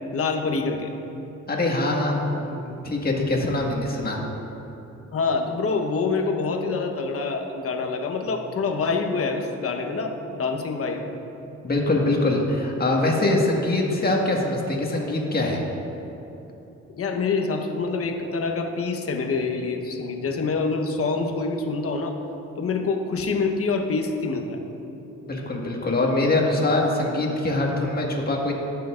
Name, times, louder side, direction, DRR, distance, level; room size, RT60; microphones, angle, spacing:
voice 1, 0.1-0.9 5.1-11.2 16.9-22.2 22.6-24.6, left 4 dB, 50° left, 4 dB, 1.1 m, -26 dB
voice 2, 1.5-4.2 11.6-15.6 25.2-28.5, left 2 dB, 30° left, -1 dB, 1.7 m, -23 dB
17.5 x 6.8 x 2.5 m, 3.0 s
cardioid pair, 90°, 30 cm